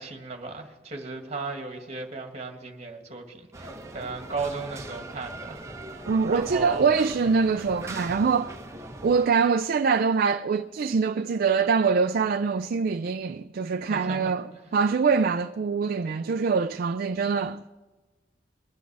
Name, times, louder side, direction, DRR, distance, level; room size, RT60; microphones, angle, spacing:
voice 1, 0.0-6.9 13.9-14.8, right 3 dB, 35° right, 1.8 m, -36 dB
sound 1, 3.5-9.3, right 1 dB, 15° right, 1.2 m, -40 dB
voice 2, 6.1-8.6 9.0-17.6, right 5 dB, 55° right, 0.4 m, -24 dB
23.0 x 9.4 x 4.8 m
head